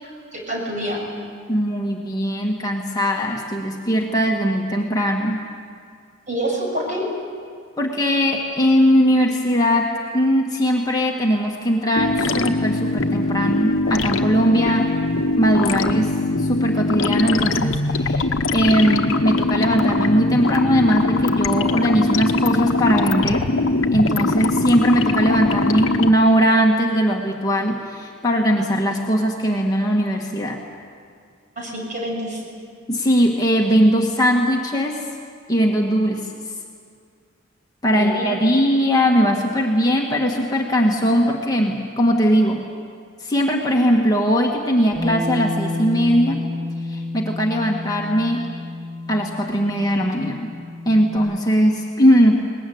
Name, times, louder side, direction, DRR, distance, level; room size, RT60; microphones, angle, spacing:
voice 1, 0.0-1.0 6.3-7.0 31.6-32.4 37.9-38.4, equal, 40° right, -1 dB, 6.6 m, -27 dB
voice 2, 1.5-5.4 7.8-14.9 15.4-23.4 23.9-30.6 32.9-35.0 35.5-36.3 37.8-42.6 43.2-46.4 46.8-48.5 49.1-50.5 50.8-52.4, equal, 20° left, -1 dB, 1.7 m, -19 dB
sound 1, 12.0-26.1, left 2 dB, 85° left, 1.1 m, -21 dB
Bass guitar, 44.9-51.2, left 2 dB, ahead, 4.4 m, -30 dB
22.0 x 20.0 x 9.5 m, 2.2 s
head